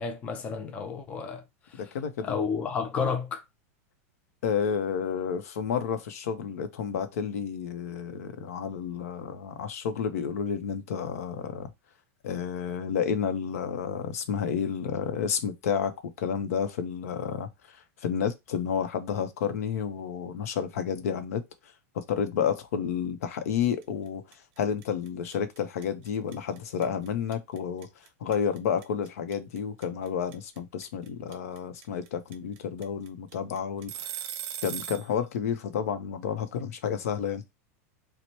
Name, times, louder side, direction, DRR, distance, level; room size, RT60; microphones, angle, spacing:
voice 1, 0.0-1.4 1.7-1.8 2.2-3.4, left 5 dB, 15° left, 0.4 m, -31 dB
voice 2, 1.8-2.4 4.4-11.7 12.2-17.8 18.0-21.4 21.9-24.2 24.6-27.9 28.2-34.2 34.6-37.4, left 7 dB, 80° left, 0.7 m, -30 dB
sound 1, 23.8-24.1 24.3-35.1, right 11 dB, 45° right, 0.6 m, -39 dB
3.0 x 2.1 x 4.1 m
supercardioid pair, 165°, 8 cm